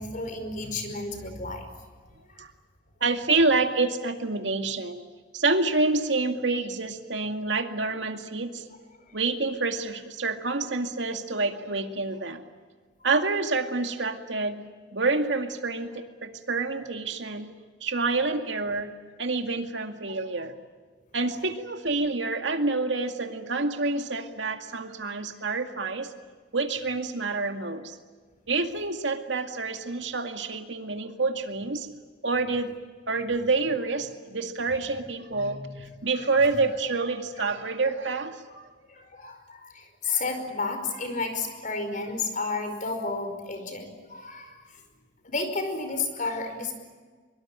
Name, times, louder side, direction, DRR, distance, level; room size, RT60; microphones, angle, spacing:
voice 1, 0.0-1.7 2.3-2.4 36.2-36.3 36.6-36.7 38.9-44.8 45.2-46.8, left 3 dB, 45° left, 7 dB, 5.1 m, -32 dB
voice 2, 3.0-5.0 5.3-8.7 9.1-12.4 13.0-14.6 14.9-17.6 17.8-18.9 19.2-20.6 21.1-26.1 26.5-28.0 28.5-31.9 32.2-32.8 33.1-38.7, right 3 dB, 90° right, 6 dB, 2.2 m, -28 dB
24.0 x 23.5 x 8.9 m, 1.5 s
head